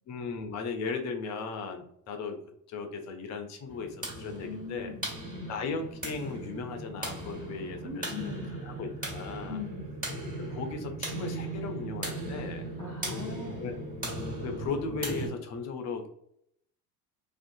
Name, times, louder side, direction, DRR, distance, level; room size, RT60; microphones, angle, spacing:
voice 1, 0.1-2.4 2.7-4.9 5.5-9.6 10.4-12.7 13.6-13.7 14.4-16.1, left 4 dB, 35° left, 5 dB, 0.5 m, -37 dB
sound 1, 3.7-15.3, right 2 dB, 15° right, 1.4 m, -38 dB
voice 2, 4.4-5.5 7.8-8.6 9.5-9.9 12.8-13.7, left 4 dB, 10° left, -7 dB, 1.1 m, -40 dB
2.5 x 2.4 x 2.5 m, 0.71 s
figure-of-eight pair, 75°, 49 cm